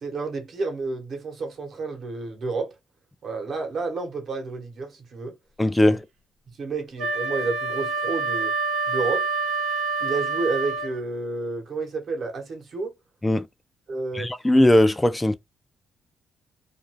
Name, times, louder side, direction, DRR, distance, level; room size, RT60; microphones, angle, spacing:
voice 1, 0.0-2.7 3.2-5.4 5.9-6.0 6.6-8.5 8.9-9.3 10.0-12.9 13.9-14.3, right 3 dB, 55° right, 1.0 m, -30 dB
voice 2, 5.6-6.0 13.2-13.5 14.1-15.3, left 1 dB, 15° left, 0.4 m, -19 dB
Wind instrument woodwind instrument, 7.0-11.0, right 4 dB, 85° right, 0.9 m, -27 dB
2.5 x 2.3 x 3.0 m
cardioid pair, 90°, 0 cm